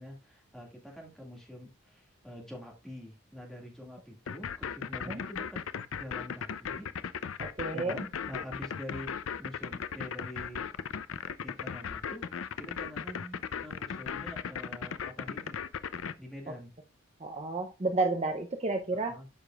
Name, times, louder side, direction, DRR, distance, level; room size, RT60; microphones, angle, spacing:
voice 1, 0.0-5.6 6.0-7.3 7.7-10.7 11.4-12.3 12.6-15.6 16.2-16.7 18.9-19.3, equal, ahead, 2.0 m, -46 dB
sound 1, 4.3-16.1, left 7 dB, 75° left, 0.5 m, -36 dB
voice 2, 7.4-8.0 17.2-19.2, right 3 dB, 30° right, 0.6 m, -31 dB
12.0 x 5.0 x 2.4 m
head